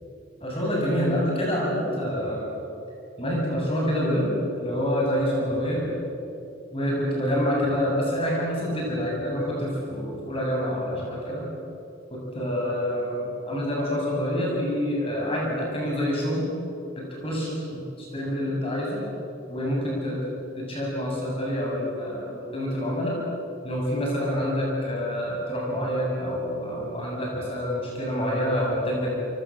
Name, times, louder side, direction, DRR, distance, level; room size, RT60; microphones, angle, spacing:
voice 1, 0.4-2.5 3.2-5.9 6.7-11.5 12.1-16.5 17.0-19.0 19.5-23.2 23.6-29.1, equal, 30° left, -3 dB, 7.7 m, -27 dB
29.5 x 26.0 x 7.7 m, 2.8 s
head